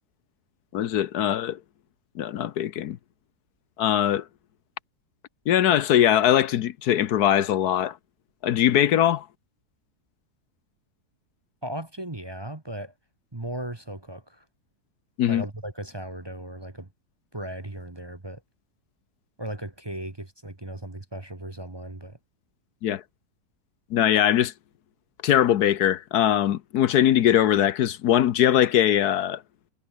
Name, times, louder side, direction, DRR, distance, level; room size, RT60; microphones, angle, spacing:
voice 1, 0.7-1.6 2.2-3.0 3.8-4.2 5.5-8.0 8.4-9.2 15.2-15.4 22.8-23.0 23.9-24.5 25.2-29.4, left 11 dB, 75° left, 1.3 m, -21 dB
voice 2, 11.6-12.9 13.3-14.4 15.3-16.9 17.3-18.4 19.4-22.2, right 1 dB, 15° right, 1.3 m, -36 dB
omnidirectional pair, 1.7 m